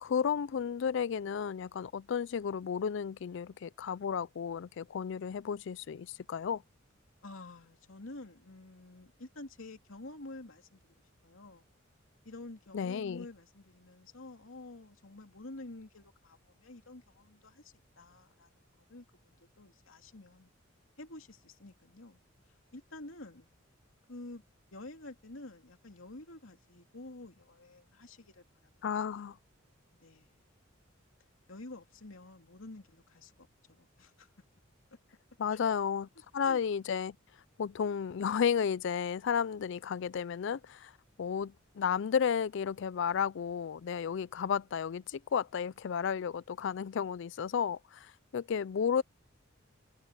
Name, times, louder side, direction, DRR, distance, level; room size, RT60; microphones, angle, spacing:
voice 1, 0.0-6.6 12.7-13.3 28.8-29.4 35.4-36.1 36.3-37.2 37.6-40.9 41.2-49.0, left 7 dB, 65° left, 0.4 m, -33 dB
voice 2, 7.2-10.9 11.2-11.6 12.2-20.5 21.0-22.2 22.7-23.5 24.1-24.4 24.7-29.1 30.0-30.4 31.5-34.3 35.5-35.6 36.4-36.6, left 2 dB, 85° left, 2.6 m, -49 dB
head